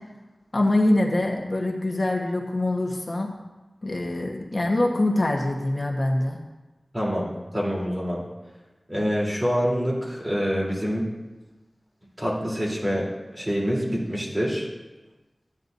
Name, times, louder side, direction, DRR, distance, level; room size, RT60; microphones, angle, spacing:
voice 1, 0.5-3.3 3.8-6.4, left 1 dB, 55° left, 0 dB, 1.2 m, -24 dB
voice 2, 6.9-8.2 8.9-11.1 12.2-13.1 13.3-14.7, equal, 20° right, -5 dB, 3.4 m, -26 dB
15.0 x 9.7 x 2.7 m, 1.1 s
wide cardioid pair, 60°, 0 cm